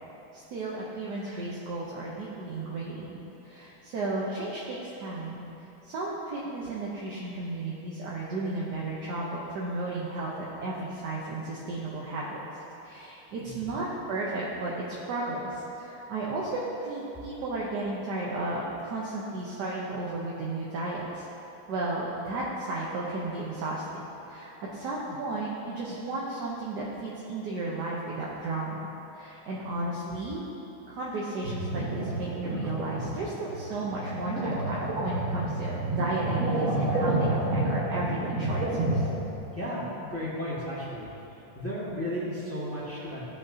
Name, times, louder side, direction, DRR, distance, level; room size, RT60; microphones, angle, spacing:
voice 1, 0.3-3.1 3.4-5.4 5.8-12.4 12.8-21.3 21.7-23.8 24.3-30.4 30.9-39.1, right 2 dB, 60° right, -5 dB, 1.3 m, -34 dB
voice 2, 13.4-13.8 39.5-41.1 41.5-43.3, equal, 5° left, -8 dB, 1.5 m, -34 dB
sound 1, 31.4-39.3, right 1 dB, 40° right, 1.4 m, -29 dB
15.5 x 5.8 x 2.8 m, 3.0 s
omnidirectional pair, 2.4 m